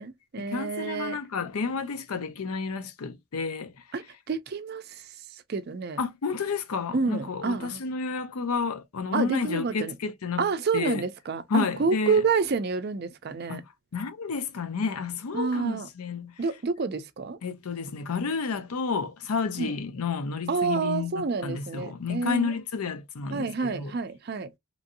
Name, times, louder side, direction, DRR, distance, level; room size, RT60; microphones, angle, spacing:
voice 1, 0.0-1.2 3.9-6.0 6.9-7.8 9.1-9.9 10.4-13.6 15.3-15.9 16.4-17.4 19.6-19.8 20.5-22.5 23.3-24.5, right 4 dB, 45° right, 0.4 m, -29 dB
voice 2, 0.5-3.7 6.0-10.5 10.7-11.0 11.5-12.2 13.5-13.6 13.9-16.3 17.4-23.9, left 5 dB, 80° left, 0.6 m, -31 dB
3.0 x 2.7 x 2.6 m
head